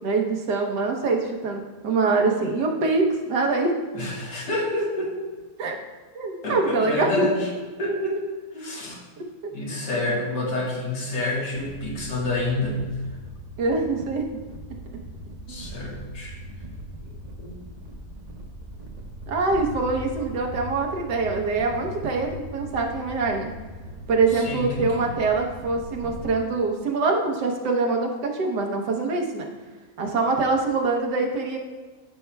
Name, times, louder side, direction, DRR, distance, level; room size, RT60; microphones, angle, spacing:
voice 1, 0.0-3.7 5.6-5.8 6.1-7.3 8.6-8.7 9.2-9.3 13.6-14.3 15.5-15.6 19.3-23.5 24.1-29.5 30.0-31.6, right 3 dB, 85° right, 1 dB, 1.6 m, -24 dB
voice 2, 3.9-5.2 6.4-8.3 8.5-9.0 9.5-12.8 15.5-16.4 17.4-17.5 24.3-25.1, left 2 dB, 85° left, -3 dB, 2.1 m, -28 dB
sound 1, 11.5-26.3, right 1 dB, 50° right, 0.5 m, -40 dB
12.5 x 5.7 x 2.2 m, 1.3 s
omnidirectional pair, 1.8 m